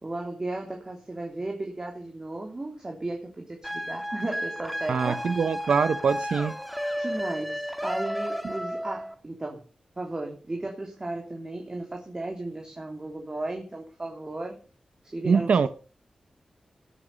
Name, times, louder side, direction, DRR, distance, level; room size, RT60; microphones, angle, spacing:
voice 1, 0.0-5.4 7.0-9.6 10.0-14.6 15.0-15.7, right 2 dB, 30° right, 3.2 m, -35 dB
sound 1, 3.6-9.1, equal, ahead, 1.9 m, -33 dB
voice 2, 4.9-6.5 15.2-15.7, right 5 dB, 85° right, 1.1 m, -23 dB
18.5 x 8.6 x 5.5 m
cardioid pair, 70°, 2 cm